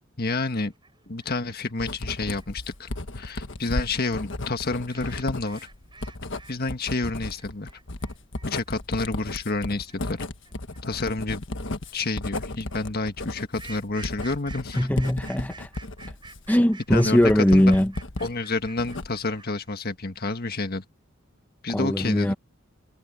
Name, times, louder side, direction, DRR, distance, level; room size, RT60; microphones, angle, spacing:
voice 1, 0.2-0.7 1.1-2.9 3.1-5.7 6.5-7.7 8.4-10.2 10.8-11.4 11.9-14.9 16.9-17.7 18.2-20.8 21.6-22.3, left 3 dB, 50° left, 1.6 m, -29 dB
sound 1, 0.5-6.6 6.8-19.7, right 4 dB, 25° right, 5.8 m, -49 dB
Writing, 1.8-18.3 18.7-19.4, left 2 dB, 65° left, 1.4 m, -34 dB
voice 2, 14.8-15.7 16.5-17.9 21.7-22.3, equal, 10° left, 0.7 m, -20 dB
head